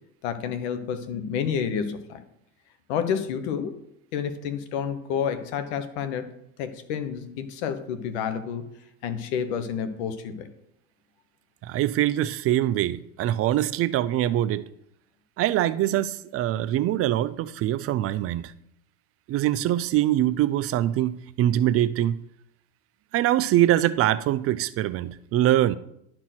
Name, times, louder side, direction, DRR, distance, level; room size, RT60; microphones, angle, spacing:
voice 1, 0.2-2.2 2.9-3.8 4.1-6.3 6.6-8.7 9.0-10.5, left 7 dB, 90° left, 1.1 m, -29 dB
voice 2, 11.6-14.7 15.4-18.5 19.3-22.2 23.1-25.8, right 13 dB, 45° right, 0.5 m, -23 dB
10.5 x 4.5 x 6.0 m
supercardioid pair, 120°, 32 cm